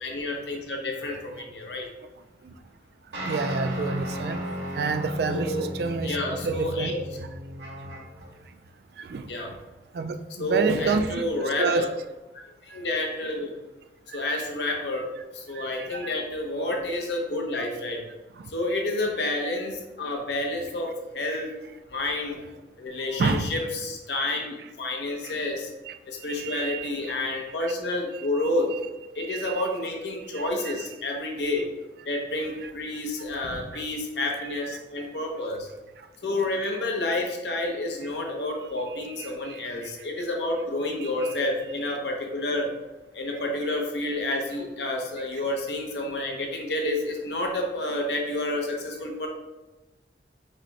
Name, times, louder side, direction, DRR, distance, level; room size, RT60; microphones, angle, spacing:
voice 1, 0.0-1.9 5.3-5.7 6.0-7.0 9.3-9.5 10.4-11.9 12.6-13.5 14.1-15.1 15.3-18.0 18.5-21.5 21.9-22.4 22.8-25.7 26.1-28.7 29.1-31.7 32.0-35.7 36.2-42.7 43.1-49.3, left 2 dB, 80° left, 1 dB, 0.8 m, -29 dB
voice 2, 3.1-6.9 7.8-7.9 8.4-8.6 8.9-9.3 9.9-11.2 11.6-11.9 12.7-12.8 14.1-14.4 15.5-16.1 18.4-18.5 21.3-21.4 23.1-23.5 25.2-25.4 25.9-27.1 27.6-27.7 28.4-28.5 29.3-29.6 30.3-30.8 32.6-32.7 33.7-33.8 34.4-34.8 36.0-36.1 39.2-39.9 41.0-41.3, right 4 dB, 65° right, 10 dB, 0.3 m, -30 dB
sound 1, 3.1-8.3, equal, 90° right, 1.5 m, -35 dB
5.2 x 2.2 x 4.0 m, 1.1 s
head